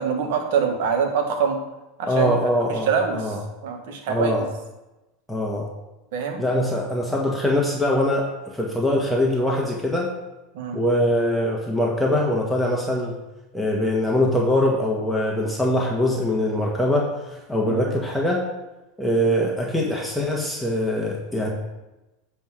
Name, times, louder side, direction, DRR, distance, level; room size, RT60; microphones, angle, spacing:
voice 1, 0.0-1.6 2.0-2.3 2.9-3.3 3.6-4.5 6.1-6.4 10.5-10.8 17.6-17.8, right 6 dB, 70° right, 4 dB, 1.5 m, -24 dB
voice 2, 2.1-2.9 3.1-3.4 4.1-4.4 5.3-5.7 6.4-8.3 8.5-10.1 10.7-13.1 13.5-18.4 19.0-21.5, left 1 dB, 5° left, -2 dB, 1.5 m, -22 dB
9.1 x 3.5 x 6.2 m, 1.0 s
hypercardioid pair, 95°, 0 cm